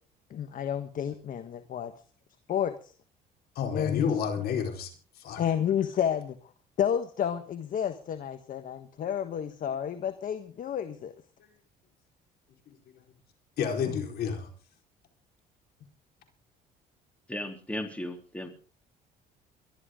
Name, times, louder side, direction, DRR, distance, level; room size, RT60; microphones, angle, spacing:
voice 1, 0.3-1.9 2.5-2.9 3.7-4.1 5.4-6.4 6.8-11.1 13.9-14.0, left 9 dB, 55° left, 10 dB, 1.5 m, -30 dB
voice 2, 3.6-4.9 5.2-5.4 12.7-12.8 13.6-14.5, left 7 dB, 70° left, 4 dB, 4.6 m, -29 dB
voice 3, 17.3-18.5, left 1 dB, 5° left, 5 dB, 3.5 m, -36 dB
23.5 x 12.5 x 3.8 m, 0.39 s
cardioid pair, 110°, 17 cm